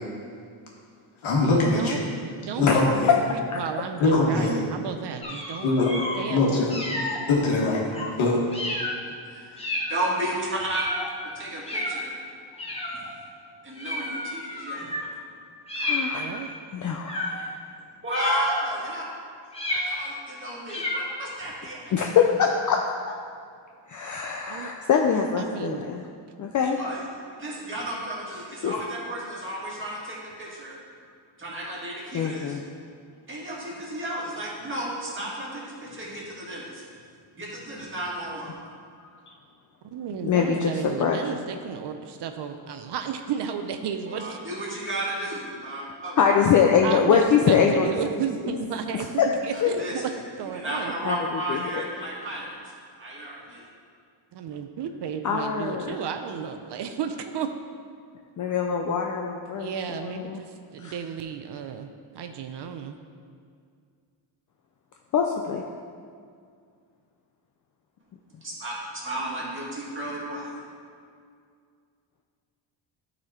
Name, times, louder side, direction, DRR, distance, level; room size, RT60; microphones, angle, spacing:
voice 1, 1.2-2.0 2.6-3.1 4.0-4.6 5.6-5.9 6.3-6.7 7.3-7.8 8.2-8.4, left 2 dB, 80° left, -3 dB, 1.8 m, -22 dB
voice 2, 2.4-5.7 6.2-6.6 16.1-16.5 24.5-24.7 25.4-25.9 39.9-44.4 46.8-50.0 50.4-50.9 54.3-57.5 59.5-61.9 62.1-63.0, right 7 dB, 60° right, 7 dB, 0.6 m, -33 dB
sound 1, 5.2-6.2 6.7-7.2 7.9-8.1 8.5-9.0 9.6-10.0 10.7-11.1 11.6-12.0 12.6-13.1 13.8-15.1 15.7-16.4 17.1-17.5 18.1-18.7 19.5-20.2 20.7-21.1, left 1 dB, 15° left, 1.0 m, -31 dB
voice 3, 9.9-10.8 11.3-12.1 13.6-14.9 18.0-19.1 19.7-21.8 26.8-27.0 27.4-30.8 31.4-32.6 33.3-36.8 37.4-38.5 44.1-46.2 49.5-50.1 50.5-52.6 53.0-53.6 68.4-68.7 69.0-70.5, right 1 dB, 25° right, -5 dB, 1.9 m, -33 dB
voice 4, 15.7-17.5 21.9-23.2 23.9-26.1 26.4-26.8 28.6-28.7 32.1-32.6 40.2-41.2 46.2-48.6 49.2-49.3 49.6-49.7 51.0-51.9 55.2-56.0 58.4-60.4 60.8-61.0 65.1-65.6, left 7 dB, 40° left, 1 dB, 0.5 m, -24 dB
11.5 x 4.2 x 4.3 m, 2.2 s
cardioid pair, 145°, 47 cm